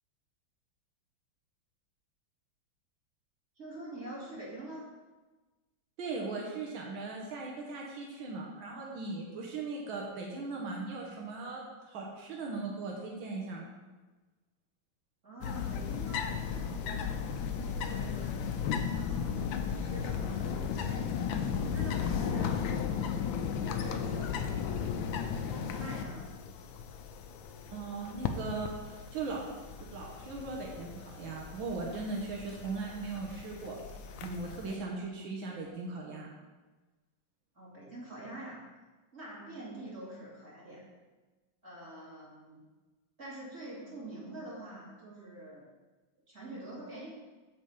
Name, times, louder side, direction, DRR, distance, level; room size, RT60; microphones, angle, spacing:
voice 1, 3.6-4.9 15.2-22.6 23.6-26.3 37.5-38.6 39.1-40.8 41.6-42.6 43.2-45.6 46.3-47.1, right 1 dB, 35° right, -7 dB, 3.0 m, -46 dB
voice 2, 6.0-13.7 27.7-29.5 29.9-33.8 34.2-36.3, right 3 dB, 90° right, -2 dB, 1.9 m, -38 dB
sound 1, 15.4-34.7, left 7 dB, 85° left, 1.5 m, -35 dB
9.0 x 4.1 x 7.3 m, 1.3 s
omnidirectional pair, 2.1 m